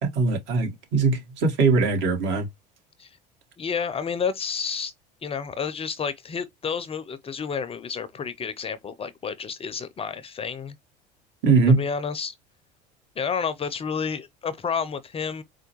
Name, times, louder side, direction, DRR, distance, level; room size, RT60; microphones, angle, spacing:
voice 1, 0.0-2.5 11.4-11.8, right 4 dB, 60° right, 1.6 m, -21 dB
voice 2, 3.6-4.9 5.2-10.8 11.8-12.3 13.2-15.4, left 6 dB, 25° left, 0.5 m, -30 dB
4.4 x 2.2 x 2.9 m
hypercardioid pair, 75°, 21 cm